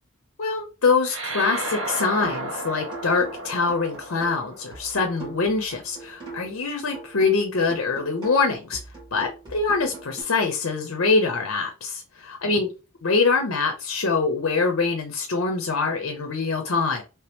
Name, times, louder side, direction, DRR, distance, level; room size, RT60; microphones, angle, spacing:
voice 1, 0.4-8.8 9.1-12.7 13.0-17.0, left 4 dB, 80° left, 4 dB, 0.7 m, -24 dB
sound 1, 1.0-5.8, right 2 dB, 70° right, 0.9 m, -34 dB
sound 2, 2.2-2.5 2.9-6.6 6.9-10.2, right 3 dB, 20° right, 1.8 m, -42 dB
3.2 x 2.9 x 3.4 m, 0.31 s
head